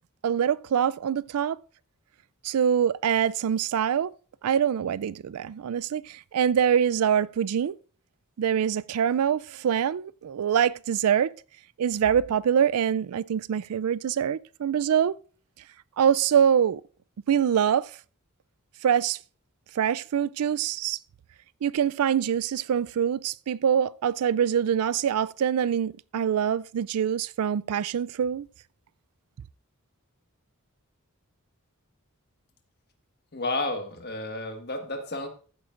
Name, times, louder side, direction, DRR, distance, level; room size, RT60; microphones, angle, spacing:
voice 1, 0.2-1.6 2.4-4.1 4.4-7.8 8.4-11.3 11.8-15.1 16.0-16.8 17.3-17.9 18.8-19.2 19.8-21.0 21.6-28.5, right 8 dB, 80° right, 0.4 m, -24 dB
voice 2, 33.3-35.3, left 2 dB, 45° left, 1.5 m, -31 dB
14.5 x 8.9 x 2.5 m
head